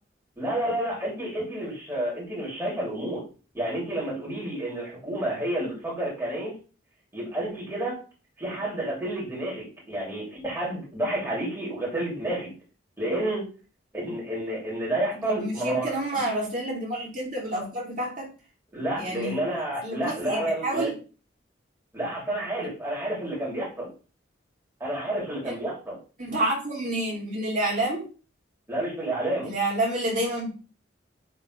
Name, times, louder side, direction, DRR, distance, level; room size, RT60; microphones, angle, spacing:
voice 1, 0.4-3.2 3.5-6.5 7.1-8.0 8.4-12.5 13.0-13.4 13.9-16.2 18.7-20.9 21.9-23.9 24.8-26.0 28.7-29.5, right 1 dB, 15° right, -6 dB, 3.0 m, -30 dB
voice 2, 15.2-18.3 19.0-19.4 19.8-21.0 25.4-25.6 26.2-28.1 29.4-30.5, right 1 dB, 45° right, -5 dB, 2.8 m, -29 dB
9.7 x 3.8 x 3.3 m, 0.36 s
head